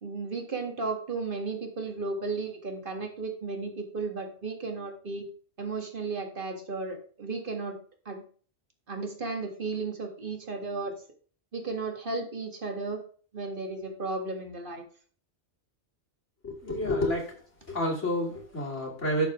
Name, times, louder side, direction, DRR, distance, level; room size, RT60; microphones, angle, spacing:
voice 1, 0.0-5.3 5.6-7.8 8.1-8.2 8.9-10.9 11.5-13.0 13.3-14.8, right 3 dB, 45° right, 3 dB, 2.0 m, -34 dB
voice 2, 16.4-17.3 17.7-19.3, left 1 dB, 75° left, -3 dB, 3.3 m, -29 dB
13.0 x 6.7 x 3.7 m, 0.44 s
omnidirectional pair, 1.2 m